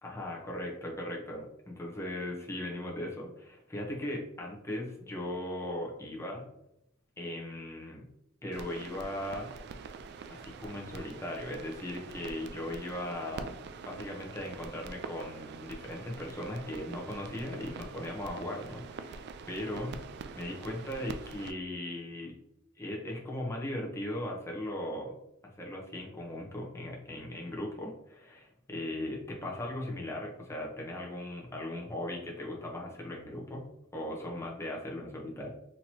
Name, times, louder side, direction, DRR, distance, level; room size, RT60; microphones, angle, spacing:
voice 1, 0.0-6.4 7.2-8.0 8.4-9.5 10.3-13.6 13.8-20.0 20.4-22.3 22.8-25.1 25.6-33.6 33.9-35.5, left 1 dB, 15° left, -2 dB, 0.9 m, -38 dB
sound 1, 8.5-21.5, right 5 dB, 55° right, 0.3 m, -45 dB
4.2 x 2.9 x 2.9 m, 0.80 s
head